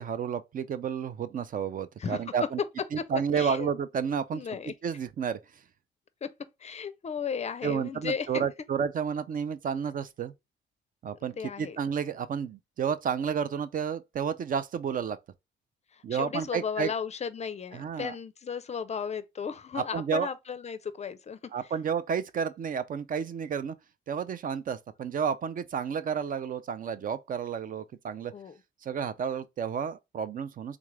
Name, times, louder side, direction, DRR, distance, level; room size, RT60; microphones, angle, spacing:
voice 1, 0.0-2.6 2.9-4.6 4.8-5.4 7.6-10.3 11.0-15.2 16.0-16.9 17.7-18.1 19.7-20.3 21.5-23.7 24.1-28.3 28.8-30.8, right 7 dB, 45° right, 0.4 m, -31 dB
voice 2, 3.3-3.7 4.3-4.7 6.2-6.3 6.6-8.4 11.4-11.8 15.9-21.4 28.3-28.6, left 6 dB, 35° left, 0.4 m, -35 dB
3.6 x 2.4 x 3.2 m
cardioid pair, 90°, 20 cm